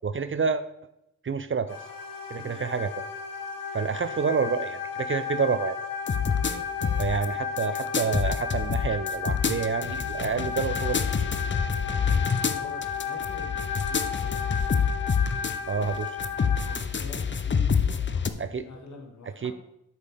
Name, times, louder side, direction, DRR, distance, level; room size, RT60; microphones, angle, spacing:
voice 1, 0.0-0.6 1.2-1.8 2.3-2.9 3.7-5.8 7.0-11.3 15.7-16.2 18.4-18.6 19.4-19.5, right 5 dB, 40° right, 12 dB, 0.5 m, -28 dB
sound 1, 1.7-16.7, left 6 dB, 85° left, 1.0 m, -34 dB
sound 2, 6.1-7.3 7.6-15.6 15.8-18.3, left 6 dB, 35° left, 0.6 m, -27 dB
voice 2, 11.9-14.6 16.6-19.5, left 3 dB, 60° left, 2 dB, 1.8 m, -46 dB
8.0 x 5.8 x 3.4 m, 0.82 s
supercardioid pair, 40°, 33 cm